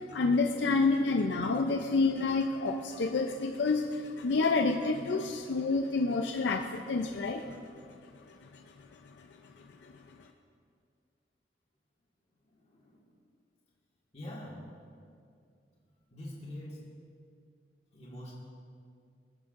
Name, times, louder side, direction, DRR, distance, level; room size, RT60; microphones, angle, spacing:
voice 1, 0.0-7.6 7.9-8.0 8.3-8.6 9.1-9.2 9.6-9.9, left 3 dB, 80° left, 4 dB, 0.5 m, -29 dB
voice 2, 14.1-14.6 16.1-16.8 17.9-18.3, left 1 dB, 40° left, -6 dB, 1.8 m, -43 dB
21.5 x 7.1 x 2.5 m, 2.3 s
head